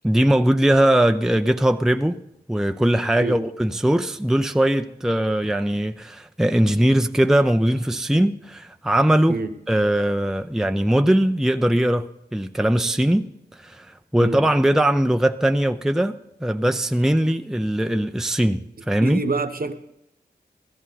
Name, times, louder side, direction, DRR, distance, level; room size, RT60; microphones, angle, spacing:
voice 1, 0.0-2.2 2.5-9.4 9.7-13.3 13.6-16.2 16.4-19.2, right 1 dB, 5° right, 0.6 m, -20 dB
voice 2, 19.0-19.7, right 3 dB, 55° right, 1.2 m, -26 dB
16.0 x 14.5 x 4.1 m
cardioid pair, 45°, 18 cm